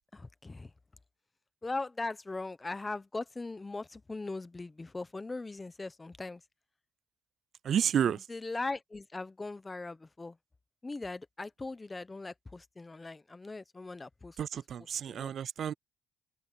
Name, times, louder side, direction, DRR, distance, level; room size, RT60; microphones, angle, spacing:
voice 1, 0.1-0.7 1.6-6.4 8.3-10.4 10.8-14.4 15.1-15.3, left 3 dB, 20° left, 1.0 m, -39 dB
voice 2, 7.6-8.3 14.4-15.7, right 9 dB, 60° right, 0.3 m, -30 dB
open air
cardioid pair, 90°, 0 cm